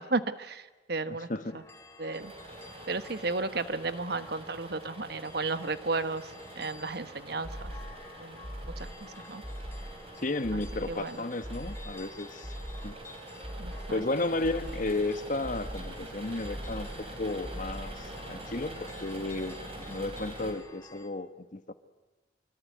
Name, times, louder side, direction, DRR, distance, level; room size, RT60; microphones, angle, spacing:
voice 1, 0.0-1.3 1.5-1.6 2.0-2.3 2.9-7.7 8.2-8.4 8.8-9.4 10.5-10.6 10.9-11.2 13.6-14.0, right 3 dB, 55° right, 11 dB, 1.2 m, -34 dB
voice 2, 1.1-1.6 10.2-12.5 12.8-13.0 13.9-19.6 19.9-21.7, left 2 dB, 45° left, 10 dB, 1.2 m, -33 dB
sound 1, 1.5-21.1, left 2 dB, 15° left, 2.7 m, -52 dB
sound 2, 2.2-20.5, right 1 dB, 30° right, 4.9 m, -45 dB
sound 3, 7.4-8.1 8.4-9.1 9.4-10.1 10.4-11.1 11.4-12.1 12.4-13.1 13.4-14.1 14.4-15.1 15.4-16.1 16.4-17.1 17.4-18.1, equal, 15° right, 1.5 m, -41 dB
25.5 x 25.0 x 9.4 m, 1.2 s
head